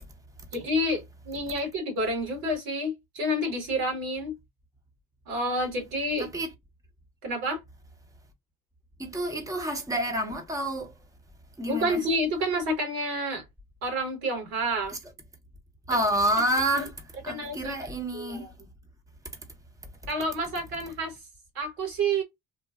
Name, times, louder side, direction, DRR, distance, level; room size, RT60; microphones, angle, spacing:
voice 1, 0.5-4.3 5.3-6.3 7.2-7.6 11.7-13.4 13.8-15.0 15.9-16.0 16.8-16.9 17.3-17.7 18.1-18.4 20.1-21.2 21.5-22.2, right 1 dB, 75° right, 1.5 m, -29 dB
voice 2, 6.2-6.5 9.0-11.0 11.6-12.1 15.9-18.5, right 1 dB, 10° right, 0.9 m, -28 dB
3.1 x 2.2 x 2.4 m
hypercardioid pair, 45°, 43 cm